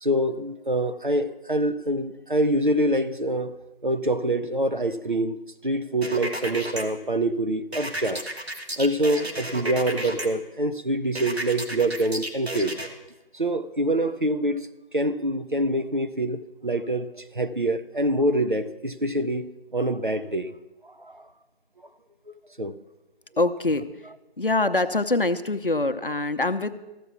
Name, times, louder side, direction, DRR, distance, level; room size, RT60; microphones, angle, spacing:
voice 1, 0.0-3.6 3.8-8.3 8.8-12.8 13.3-14.7 14.9-20.5 20.8-21.3 22.6-22.7, right 1 dB, 55° right, 0.6 m, -25 dB
sound 1, 6.0-6.8 7.7-10.3 11.2-12.9, right 1 dB, 85° right, 1.6 m, -33 dB
voice 2, 23.4-23.9 24.4-26.7, left 2 dB, 60° left, 0.7 m, -24 dB
14.0 x 7.0 x 6.1 m
figure-of-eight pair, 175°, 31 cm